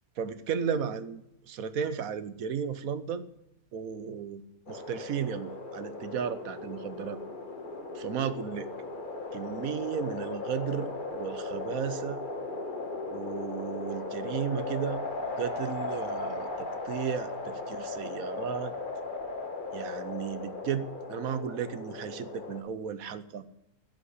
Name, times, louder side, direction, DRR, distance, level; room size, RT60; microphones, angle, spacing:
voice 1, 0.2-3.2 3.7-4.4 4.7-7.2 7.9-8.7 9.3-12.2 13.1-15.0 15.4-18.7 19.7-23.4, right 7 dB, 75° right, 13 dB, 1.2 m, -34 dB
sound 1, 4.7-22.6, left 3 dB, 35° left, 1.6 m, -37 dB
16.0 x 5.8 x 10.0 m, 0.89 s
omnidirectional pair, 1.6 m